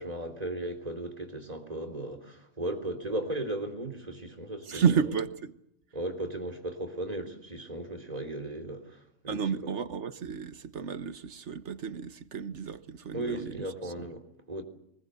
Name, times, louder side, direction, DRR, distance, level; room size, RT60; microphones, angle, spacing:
voice 1, 0.0-4.8 5.9-9.7 13.1-14.6, right 1 dB, 30° right, 3.5 m, -36 dB
voice 2, 4.7-5.6 9.3-14.1, right 6 dB, 65° right, 1.4 m, -31 dB
22.5 x 21.0 x 8.0 m
omnidirectional pair, 1.3 m